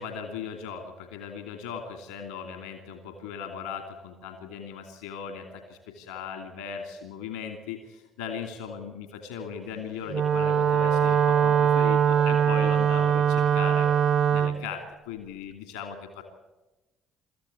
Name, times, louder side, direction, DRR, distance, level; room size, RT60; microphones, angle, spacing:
voice 1, 0.0-13.9 14.3-16.2, left 6 dB, 80° left, 6 dB, 2.5 m, -38 dB
Wind instrument woodwind instrument, 10.1-14.6, right 8 dB, 55° right, 1.2 m, -22 dB
24.5 x 14.0 x 9.8 m, 1.1 s
hypercardioid pair, 50°, 0 cm